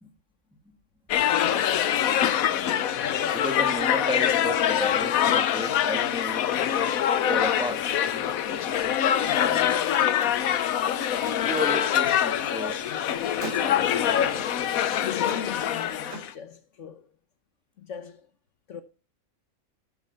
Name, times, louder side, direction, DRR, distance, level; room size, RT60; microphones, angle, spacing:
sound 1, 1.1-16.3, left 10 dB, 80° left, 1.2 m, -24 dB
voice 1, 1.4-2.2 9.2-10.4 15.0-17.1 17.8-18.3 18.7-18.8, left 7 dB, 60° left, 1.2 m, -40 dB
voice 2, 3.3-6.5 7.3-7.8 11.4-12.8 13.3-14.5, left 1 dB, 5° right, 1.5 m, -33 dB
Car, 10.2-10.9 11.2-16.3, right 2 dB, 65° right, 4.0 m, -43 dB
12.5 x 7.1 x 4.2 m
omnidirectional pair, 1.5 m